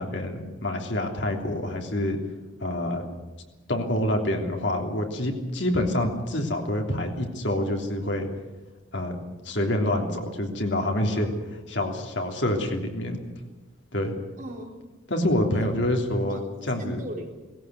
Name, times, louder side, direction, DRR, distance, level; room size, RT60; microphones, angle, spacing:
voice 1, 0.0-2.2 2.6-3.0 3.7-8.3 8.9-9.2 9.4-11.3 11.7-13.2 13.9-14.1 15.1-17.0, left 1 dB, 65° left, 3 dB, 3.2 m, -27 dB
voice 2, 14.4-14.9 15.6-15.8 16.3-17.3, right 1 dB, 40° right, 1 dB, 3.7 m, -39 dB
19.0 x 17.0 x 9.4 m, 1.1 s
head